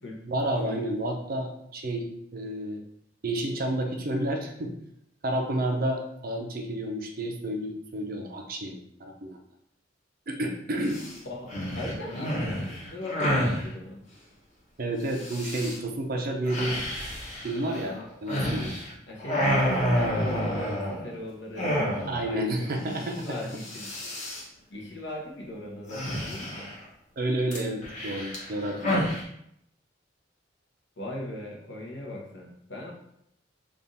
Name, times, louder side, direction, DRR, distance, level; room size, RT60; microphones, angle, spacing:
voice 1, 0.3-2.8 3.2-4.7 5.2-9.4 10.3-11.0 14.8-16.8 17.4-18.8 22.1-23.3 27.2-29.0, right 1 dB, 50° right, 3 dB, 0.6 m, -30 dB
sound 1, 10.9-11.1 11.5-13.6 15.1-15.8 16.5-18.9 19.2-21.1 21.6-22.3 22.6-22.7 23.0-23.3 23.5-24.4 25.9-26.8 27.5-29.2, equal, 40° left, 1.0 m, -29 dB
voice 2, 11.2-14.0 19.1-19.4 19.9-23.9 24.7-26.7 31.0-32.9, left 1 dB, 70° left, -2 dB, 1.0 m, -39 dB
3.5 x 2.5 x 4.0 m, 0.75 s
head